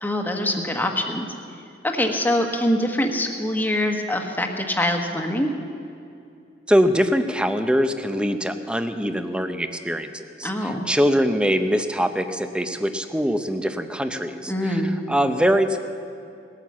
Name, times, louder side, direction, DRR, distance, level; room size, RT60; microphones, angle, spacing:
voice 1, 0.0-1.3 1.8-5.5 10.4-10.9 14.5-14.9, left 1 dB, 10° left, 3 dB, 1.2 m, -24 dB
voice 2, 6.7-14.8 15.1-15.8, equal, 5° right, 8 dB, 0.7 m, -23 dB
19.0 x 9.2 x 7.3 m, 2.5 s
head